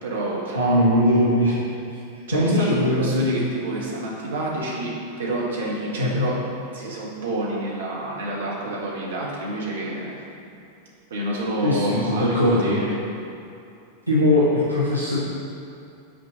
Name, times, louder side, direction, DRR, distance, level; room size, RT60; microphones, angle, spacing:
voice 1, 0.0-0.8 2.3-6.4 6.7-10.2 11.1-12.9, right 1 dB, 65° right, -4 dB, 1.6 m, -28 dB
voice 2, 0.5-1.6 2.3-3.5 6.0-6.2 11.6-12.8 14.1-15.2, left 1 dB, 85° right, -8 dB, 1.2 m, -20 dB
6.4 x 4.5 x 6.3 m, 2.7 s
figure-of-eight pair, 90°, 0 cm